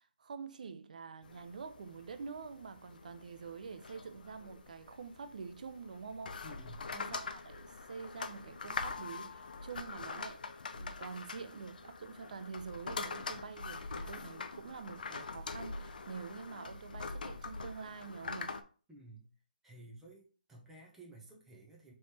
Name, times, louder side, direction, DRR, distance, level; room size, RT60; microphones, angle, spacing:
voice 1, 0.0-6.4 6.9-18.6, right 5 dB, 55° right, 0.4 m, -46 dB
sound 1, 1.2-18.6, left 4 dB, 65° left, 0.5 m, -44 dB
voice 2, 6.4-6.9 18.9-19.3 19.6-21.9, right 2 dB, 5° right, 0.7 m, -54 dB
3.2 x 3.1 x 4.2 m
hypercardioid pair, 155°, 5 cm